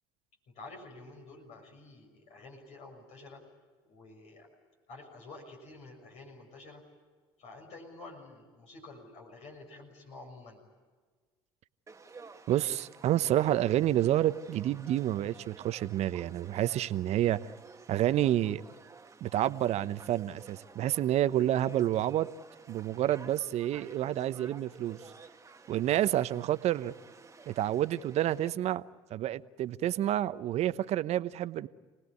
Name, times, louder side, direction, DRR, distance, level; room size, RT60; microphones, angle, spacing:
voice 1, 0.5-3.4 3.8-4.5 4.9-6.8 7.4-10.6, left 2 dB, 60° left, 2 dB, 6.6 m, -49 dB
Conversation / Crowd, 11.9-28.5, right 4 dB, 25° right, 1.5 m, -53 dB
voice 2, 12.5-17.5 17.9-18.6 19.2-22.3 22.7-25.0 25.7-26.9 27.5-28.8 29.1-31.7, right 12 dB, 55° right, 14 dB, 1.0 m, -29 dB
30.0 x 19.5 x 9.8 m, 1.4 s
hypercardioid pair, 65°, 13 cm